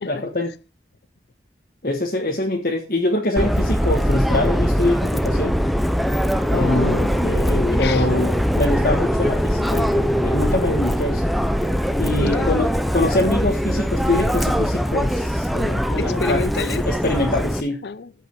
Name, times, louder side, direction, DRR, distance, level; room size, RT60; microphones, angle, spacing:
voice 1, 0.0-0.5 1.8-5.5 6.5-7.0 7.8-9.9 10.2-11.2 12.0-16.4 16.8-17.8, left 2 dB, 55° left, 1.5 m, -24 dB
Subway metro underground, 3.4-17.6, equal, ahead, 0.5 m, -21 dB
voice 2, 6.5-8.1 12.2-12.6 16.0-16.9 17.8-18.1, left 4 dB, 70° left, 0.5 m, -28 dB
14.5 x 5.4 x 4.6 m
head